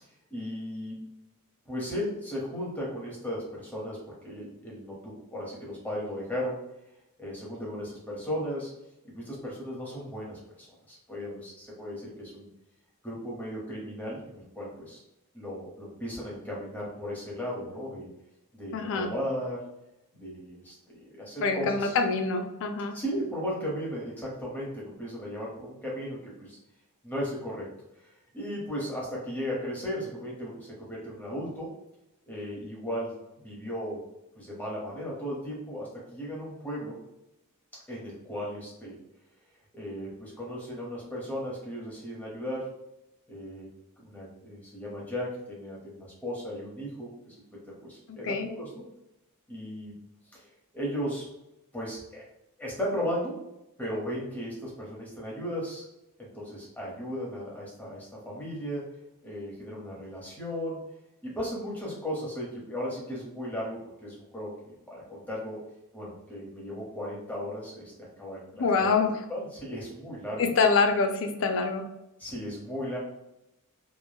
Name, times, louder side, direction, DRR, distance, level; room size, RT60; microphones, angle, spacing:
voice 1, 0.3-1.1 1.6-6.6 7.2-8.7 9.0-12.5 13.0-15.0 15.3-18.1 18.5-19.7 20.1-22.0 22.9-26.6 27.0-27.7 28.0-31.7 32.3-34.0 34.3-37.0 37.9-39.0 39.7-42.7 43.3-43.7 44.0-48.9 49.5-49.9 50.3-51.3 51.7-52.2 52.6-53.4 53.8-55.9 56.2-58.9 59.2-60.8 61.2-65.6 65.9-68.9 69.3-70.5 72.2-73.0, equal, 10° left, -5 dB, 0.9 m, -36 dB
voice 2, 18.7-19.1 21.4-23.0 48.2-48.5 68.5-69.1 70.4-71.8, left 4 dB, 60° left, 5 dB, 0.4 m, -25 dB
3.2 x 2.2 x 2.2 m, 0.89 s
head